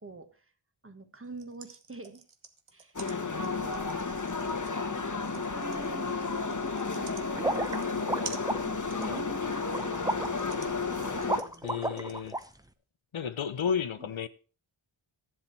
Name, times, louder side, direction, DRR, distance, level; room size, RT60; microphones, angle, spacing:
voice 1, 0.0-0.4 0.8-2.2 2.7-3.0 4.9-8.2 8.6-11.6 14.0-14.1, right 3 dB, 25° right, 1.4 m, -47 dB
sound 1, 1.2-12.6, right 5 dB, 75° right, 1.3 m, -48 dB
sound 2, 3.0-11.4, left 4 dB, 35° left, 1.2 m, -32 dB
sound 3, 7.4-12.4, right 1 dB, 5° right, 0.8 m, -33 dB
voice 2, 11.6-12.4 13.1-14.3, left 7 dB, 70° left, 0.8 m, -32 dB
11.0 x 7.8 x 4.5 m
wide cardioid pair, 40°, 50 cm